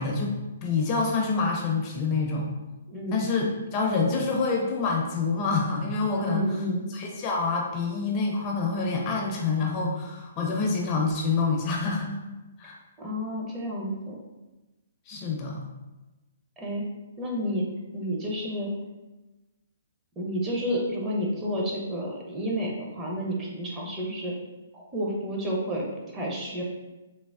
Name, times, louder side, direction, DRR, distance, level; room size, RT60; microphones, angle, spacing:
voice 1, 0.0-2.5 3.1-3.5 3.7-6.4 6.9-12.2 12.6-12.8 15.1-15.6, left 4 dB, 30° left, 0 dB, 0.4 m, -27 dB
voice 2, 2.9-3.2 6.2-6.9 13.0-14.2 16.6-16.8 17.2-17.7 17.9-18.7 20.2-24.3 24.7-26.6, equal, 20° right, -3 dB, 0.6 m, -30 dB
3.3 x 2.0 x 2.3 m, 1.1 s
figure-of-eight pair, 125°, 0 cm